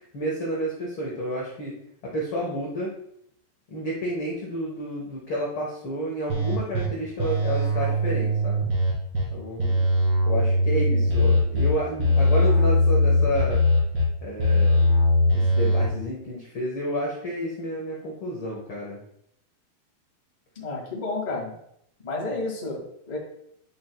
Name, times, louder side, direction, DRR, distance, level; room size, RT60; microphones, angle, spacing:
voice 1, 0.1-1.7 2.0-2.9 3.7-8.7 9.3-9.8 10.2-13.6 14.2-14.8 15.3-19.0 22.3-22.4, equal, 70° left, -4 dB, 1.2 m, -30 dB
sound 1, 6.3-6.9 7.2-9.2 9.6-11.7 12.0-14.0 14.4-15.9, left 1 dB, 35° right, 2.5 m, -21 dB
voice 2, 20.5-21.5 22.0-23.2, left 2 dB, 30° left, -2 dB, 0.8 m, -31 dB
10.5 x 6.2 x 2.3 m, 0.72 s
omnidirectional pair, 4.5 m